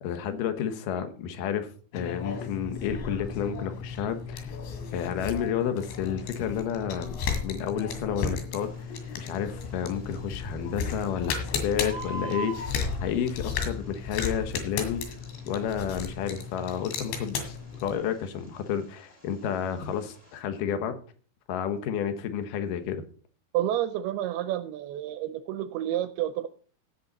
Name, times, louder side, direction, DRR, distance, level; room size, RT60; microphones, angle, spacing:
voice 1, 0.0-4.6 4.9-7.1 7.4-15.0 15.5-21.0 21.5-23.0, left 8 dB, 65° left, 8 dB, 2.3 m, -31 dB
sound 1, 1.9-18.0, left 6 dB, 85° left, 4.3 m, -34 dB
Bird, 8.6-20.4, right 2 dB, 15° left, 1.2 m, -46 dB
voice 2, 23.5-26.5, right 12 dB, 80° right, 12 dB, 2.3 m, -29 dB
17.0 x 6.9 x 4.1 m, 0.42 s
omnidirectional pair, 5.1 m